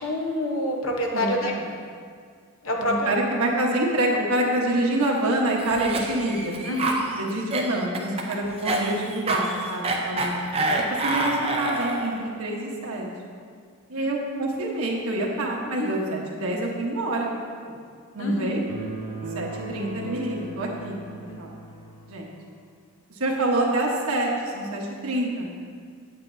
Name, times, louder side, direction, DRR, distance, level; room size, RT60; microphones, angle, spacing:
voice 1, 0.0-1.6 2.6-3.1 6.6-7.0 15.8-15.9 18.2-18.6 21.3-21.4, left 1 dB, 65° left, 0 dB, 0.9 m, -27 dB
voice 2, 1.1-1.6 2.8-6.6 7.2-10.3 11.0-13.1 13.9-17.3 17.6-17.7 18.1-18.6 19.3-21.5 22.1-22.3 23.2-25.5, right 1 dB, 75° right, -1 dB, 1.2 m, -26 dB
Cough, 5.6-12.2, right 2 dB, 25° right, 0.6 m, -27 dB
sound 1, 18.7-22.2, right 1 dB, 50° right, 1.2 m, -37 dB
8.7 x 8.1 x 2.7 m, 2.1 s
head